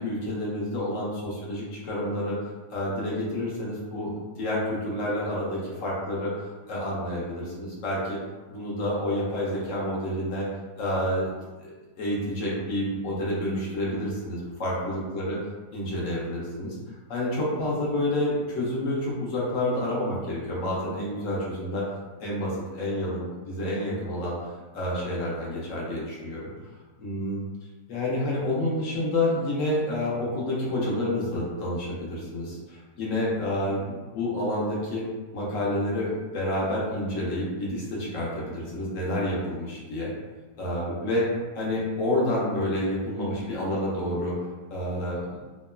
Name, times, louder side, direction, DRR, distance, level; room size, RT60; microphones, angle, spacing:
voice 1, 0.0-2.4 2.7-6.3 6.7-8.2 8.5-10.4 10.8-11.3 11.6-11.7 12.0-15.4 15.7-16.8 17.1-21.9 22.2-24.4 24.7-26.5 27.0-27.4 27.9-35.0 35.3-40.1 40.6-41.3 41.5-44.4 44.7-45.4, left 1 dB, 60° left, -5 dB, 0.8 m, -29 dB
2.9 x 2.1 x 2.2 m, 1.3 s
omnidirectional pair, 1.8 m